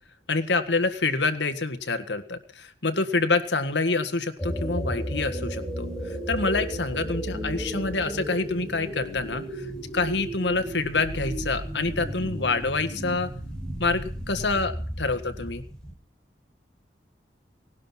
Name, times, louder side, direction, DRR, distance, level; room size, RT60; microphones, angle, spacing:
voice 1, 0.3-9.7 9.9-13.3 13.8-15.6, left 3 dB, 85° left, 10 dB, 1.8 m, -27 dB
sound 1, 4.4-15.9, right 1 dB, 5° left, 6.8 m, -34 dB
19.0 x 11.5 x 5.9 m, 0.42 s
head